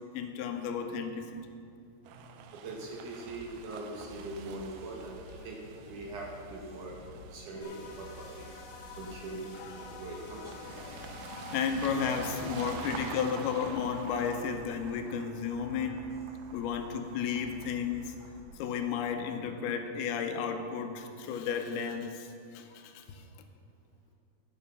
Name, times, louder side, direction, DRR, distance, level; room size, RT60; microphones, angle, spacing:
voice 1, 0.1-1.4 7.6-7.7 9.5-16.0 16.5-18.1 18.6-23.2, left 6 dB, 85° left, 6 dB, 2.7 m, -34 dB
sound 1, 2.1-19.7, right 6 dB, 90° right, 1.9 m, -47 dB
voice 2, 2.5-5.6 5.9-8.5 9.0-9.5 9.7-10.7, right 2 dB, 65° right, -1 dB, 2.3 m, -42 dB
sound 2, 3.2-18.5, equal, 50° right, 4.5 m, -52 dB
sound 3, 7.6-13.1, left 5 dB, 65° left, 3.0 m, -49 dB
10.5 x 9.4 x 5.6 m, 2.4 s
omnidirectional pair, 4.5 m